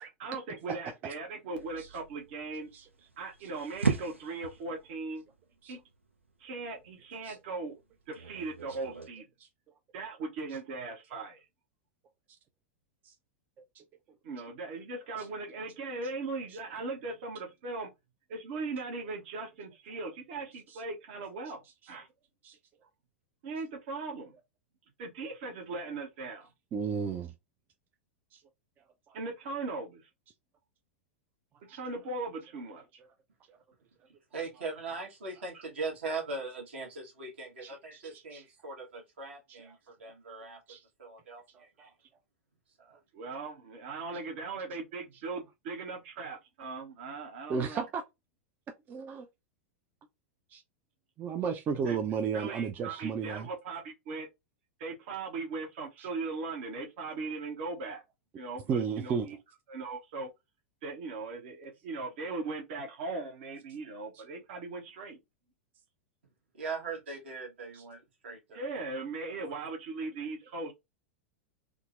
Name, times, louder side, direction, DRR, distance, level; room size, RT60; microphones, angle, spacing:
voice 1, 0.0-2.7 3.2-5.2 5.7-5.8 6.4-7.8 8.1-9.2 9.9-11.4 14.2-17.9 18.3-22.1 23.4-24.3 25.0-26.5 29.1-30.1 31.6-32.8 43.1-47.9 51.8-52.0 52.3-54.3 54.8-58.0 58.4-59.4 59.7-60.3 60.8-65.2 68.5-70.7, right 3 dB, 55° right, 0.8 m, -39 dB
sound 1, 1.5-9.1, right 4 dB, 90° right, 0.5 m, -38 dB
voice 2, 26.7-27.3 28.3-28.4 31.7-31.8 33.5-33.6 37.6-37.7 38.3-38.4 40.7-40.8 41.8-41.9 47.5-48.0 48.9-49.3 50.5-50.6 51.2-53.5 56.0-56.1 58.7-59.3, right 6 dB, 30° right, 0.4 m, -33 dB
voice 3, 34.1-41.9 42.8-43.0 66.5-68.7 69.3-69.6, right 3 dB, 70° right, 1.2 m, -40 dB
3.6 x 2.0 x 2.4 m
figure-of-eight pair, 95°, 7 cm